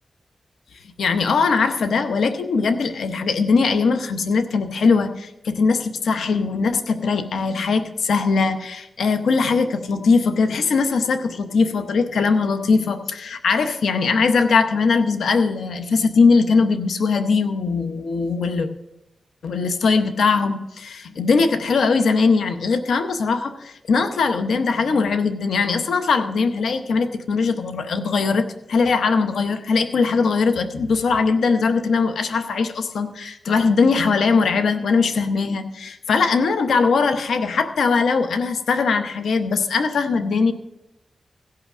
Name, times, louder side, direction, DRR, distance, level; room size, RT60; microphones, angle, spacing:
voice 1, 1.0-18.7 19.4-40.5, left 4 dB, 90° left, 9 dB, 0.7 m, -20 dB
16.0 x 5.7 x 6.0 m, 0.93 s
cardioid pair, 60°, 0 cm